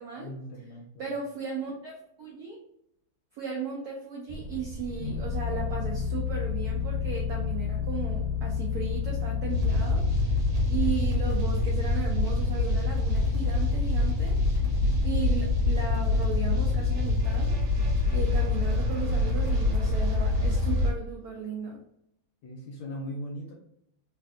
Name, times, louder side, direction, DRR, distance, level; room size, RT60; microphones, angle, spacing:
voice 1, 0.1-1.1 22.4-23.5, equal, 70° left, -1 dB, 1.0 m, -39 dB
voice 2, 1.0-2.6 3.4-10.1 10.7-14.5 15.0-17.5 18.1-21.8, right 6 dB, 80° right, -1 dB, 0.8 m, -36 dB
sound 1, 4.3-20.5, left 6 dB, 85° left, 1.4 m, -33 dB
sound 2, 9.5-20.9, left 2 dB, 60° right, 1.3 m, -26 dB
3.3 x 2.5 x 2.5 m, 0.76 s
omnidirectional pair, 2.3 m